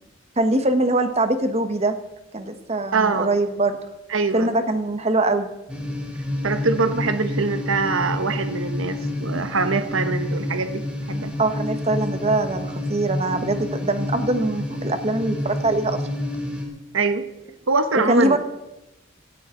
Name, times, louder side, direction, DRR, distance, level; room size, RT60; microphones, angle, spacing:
voice 1, 0.4-1.9 2.3-3.8 4.3-5.5 11.4-16.0 18.1-18.4, right 2 dB, 30° right, 8 dB, 1.2 m, -22 dB
voice 2, 2.9-3.3 4.1-4.5 6.4-11.3 16.9-17.3 17.7-18.4, right 4 dB, 80° right, 10 dB, 1.0 m, -23 dB
sound 1, 5.7-16.6, left 1 dB, 5° right, 2.5 m, -29 dB
17.0 x 13.5 x 3.8 m, 0.93 s
head